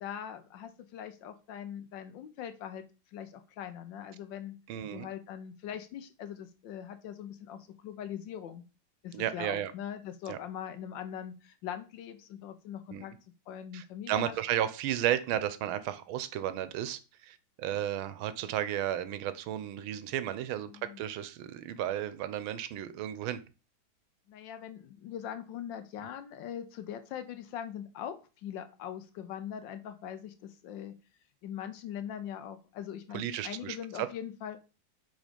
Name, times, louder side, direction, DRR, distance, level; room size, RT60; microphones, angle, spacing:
voice 1, 0.0-2.8 3.1-4.6 4.9-8.6 9.0-13.1 13.5-14.4 20.6-21.0 24.3-30.9 31.4-34.6, left 9 dB, 70° left, 10 dB, 1.3 m, -41 dB
voice 2, 4.7-5.1 9.1-9.7 10.3-10.4 12.9-13.0 13.7-23.4 33.1-34.1, right 11 dB, 85° right, 14 dB, 1.5 m, -33 dB
5.2 x 3.6 x 5.0 m, 0.32 s
omnidirectional pair, 2.2 m